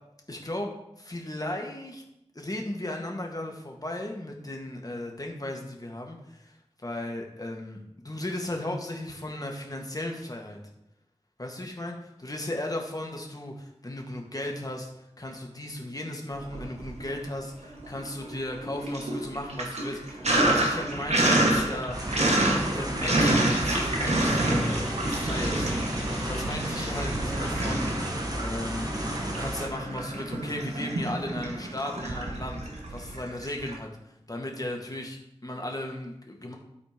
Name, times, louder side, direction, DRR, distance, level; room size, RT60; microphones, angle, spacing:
voice 1, 0.3-2.0 2.3-6.5 6.8-10.6 11.4-14.9 15.2-25.7 26.2-32.6 32.9-33.9 34.3-36.5, left 1 dB, 35° left, 1 dB, 1.7 m, -36 dB
Sink (filling or washing), 16.4-17.3 17.6-33.7, right 1 dB, 90° right, 1.6 m, -28 dB
sound 1, 21.9-29.7, right 1 dB, 35° right, 1.6 m, -33 dB
12.5 x 4.2 x 5.1 m, 0.84 s
wide cardioid pair, 65°, 11 cm